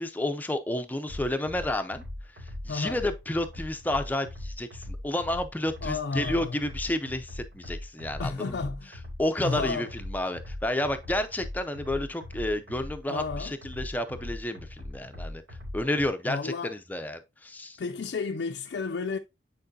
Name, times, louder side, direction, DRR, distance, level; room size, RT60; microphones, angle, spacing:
voice 1, 0.0-2.0 2.6-8.6 9.2-15.4 15.7-17.8, left 1 dB, 10° left, 0.5 m, -31 dB
sound 1, 1.1-16.1, left 1 dB, 75° right, 2.6 m, -40 dB
voice 2, 2.7-3.0 5.8-6.6 8.2-8.9 9.4-9.9 13.1-13.5 16.3-16.7 17.8-19.2, left 4 dB, 65° left, 0.4 m, -32 dB
9.1 x 4.6 x 2.7 m
head